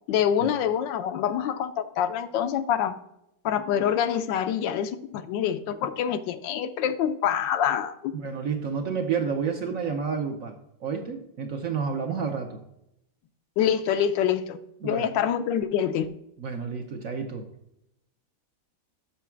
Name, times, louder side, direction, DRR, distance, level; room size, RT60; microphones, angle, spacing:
voice 1, 0.1-3.0 3.4-8.1 13.6-14.6 14.8-16.1, left 9 dB, 80° left, 10 dB, 1.3 m, -26 dB
voice 2, 8.1-10.6 10.8-12.6 14.8-15.1 16.4-17.5, right 6 dB, 60° right, 4 dB, 0.9 m, -30 dB
7.2 x 5.9 x 4.4 m, 0.82 s
omnidirectional pair, 2.1 m